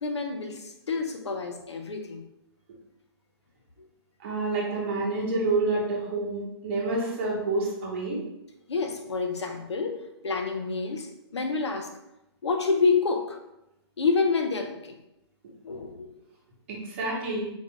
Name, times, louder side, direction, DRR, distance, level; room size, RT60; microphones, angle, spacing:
voice 1, 0.0-2.2 3.8-3.9 8.7-11.9 12.4-13.4 14.0-15.0 15.6-16.1, left 4 dB, 90° left, 5 dB, 0.7 m, -28 dB
voice 2, 4.2-8.2 16.7-17.5, right 2 dB, 30° right, -3 dB, 1.0 m, -28 dB
4.0 x 2.4 x 3.7 m, 0.86 s
hypercardioid pair, 170°, 14 cm